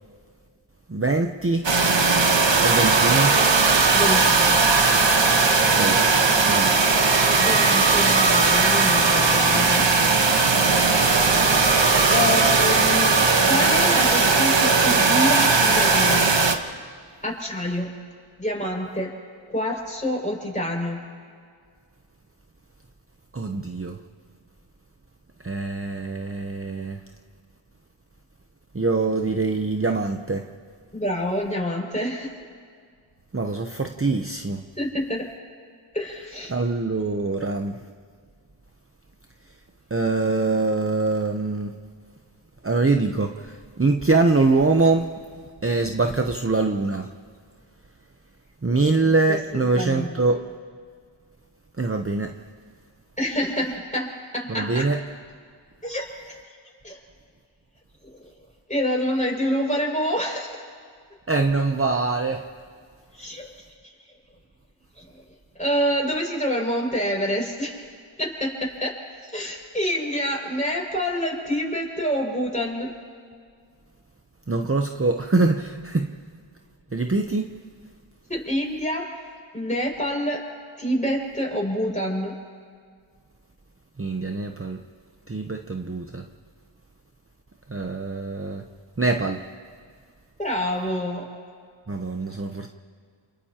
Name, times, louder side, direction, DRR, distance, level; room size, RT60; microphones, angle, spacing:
voice 1, 0.9-1.7 2.6-3.4 5.7-6.1 6.5-6.9 23.3-24.0 25.4-27.0 28.7-30.5 33.3-34.6 36.5-37.8 39.9-41.8 42.6-45.1 45.6-47.1 48.6-50.5 51.8-52.4 54.5-55.0 61.3-62.5 74.5-76.2 76.9-77.5 84.0-84.8 85.3-86.3 87.7-88.7 89.0-89.4 91.9-92.7, right 3 dB, 25° right, 4 dB, 0.9 m, -24 dB
sound 1, 1.6-16.6, right 4 dB, 60° right, 1.3 m, -18 dB
voice 2, 3.9-4.6 7.4-9.9 12.1-16.3 17.2-17.9 18.4-19.1 19.5-21.0 30.9-32.4 34.8-35.3 35.9-36.5 37.3-37.5 49.0-50.2 53.2-54.9 55.8-56.4 56.8-57.0 58.1-58.3 58.7-60.6 63.1-63.5 65.0-65.2 65.5-67.8 68.2-68.9 69.3-72.9 78.3-79.0 79.5-80.4 80.8-82.3 90.4-91.3, equal, 15° left, -2 dB, 6.2 m, -27 dB
30.0 x 29.5 x 3.0 m, 2.1 s
wide cardioid pair, 45°, 48 cm